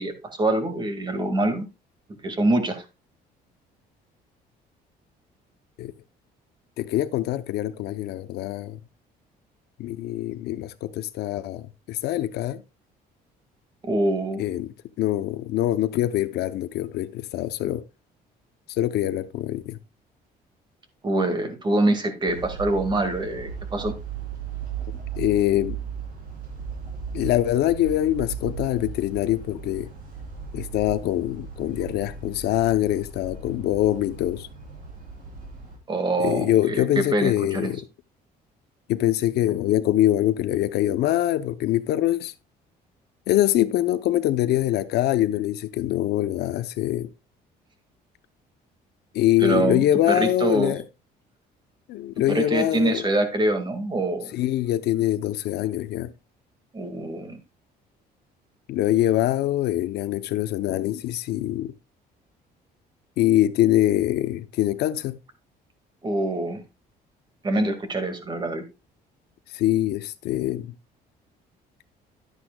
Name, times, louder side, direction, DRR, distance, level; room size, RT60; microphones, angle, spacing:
voice 1, 0.0-1.7 2.2-2.8 13.8-14.4 21.0-23.9 35.9-37.7 49.4-50.8 52.3-54.3 56.7-57.4 66.0-66.6 67.4-68.6, right 2 dB, 25° right, 1.9 m, -25 dB
voice 2, 6.8-8.8 9.8-12.6 14.4-17.8 18.8-19.8 25.2-25.8 27.1-29.9 30.5-34.5 36.2-37.8 38.9-42.3 43.3-47.1 49.1-50.8 51.9-53.1 54.3-56.1 58.7-61.7 63.2-65.2 69.5-70.7, left 13 dB, 75° left, 0.7 m, -24 dB
sound 1, 22.3-35.8, right 6 dB, 55° right, 3.6 m, -37 dB
10.5 x 9.8 x 2.3 m
cardioid pair, 110°, 17 cm